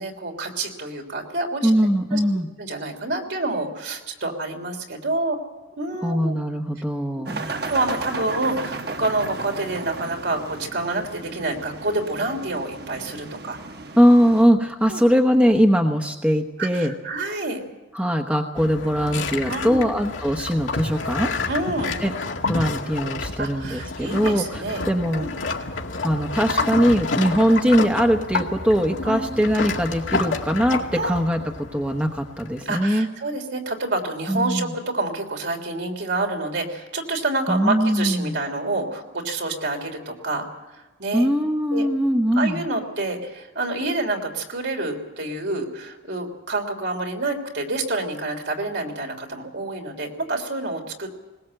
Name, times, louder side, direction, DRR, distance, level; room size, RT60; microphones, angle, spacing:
voice 1, 0.0-1.7 2.1-2.2 2.6-5.4 5.8-6.3 7.7-13.6 14.9-15.0 16.6-17.6 19.5-19.9 21.5-22.0 23.4-25.3 29.0-29.3 30.9-31.2 32.6-40.5 40.7-41.3 41.7-41.9 42.4-51.1, right 2 dB, 70° right, 3 dB, 3.4 m, -28 dB
voice 2, 1.6-2.5 6.0-7.5 14.0-16.9 17.9-21.3 22.0-22.1 22.5-25.5 26.0-33.1 34.3-34.7 37.5-38.4 41.1-42.6, equal, 5° right, 4 dB, 1.0 m, -21 dB
sound 1, 7.3-14.4, right 3 dB, 55° right, 1.1 m, -35 dB
sound 2, 18.5-32.7, left 3 dB, 90° left, 2.1 m, -29 dB
21.0 x 20.0 x 7.7 m, 1.1 s
head